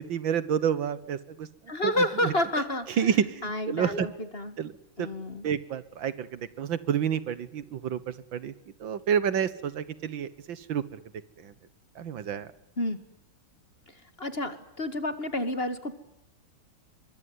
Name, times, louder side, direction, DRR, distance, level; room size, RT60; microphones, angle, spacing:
voice 1, 0.0-1.5 1.8-1.9 2.2-2.3 3.0-4.1 4.6-4.7 5.0-5.1 5.4-8.0 8.3-8.5 8.8-11.0 11.4-11.5 12.0-12.5, right 8 dB, 75° right, 16 dB, 1.9 m, -29 dB
voice 2, 1.7-4.6 5.0-5.5 12.8-13.0 14.2-15.9, left 1 dB, 30° left, 11 dB, 2.0 m, -30 dB
24.0 x 24.0 x 9.6 m, 0.81 s
omnidirectional pair, 2.2 m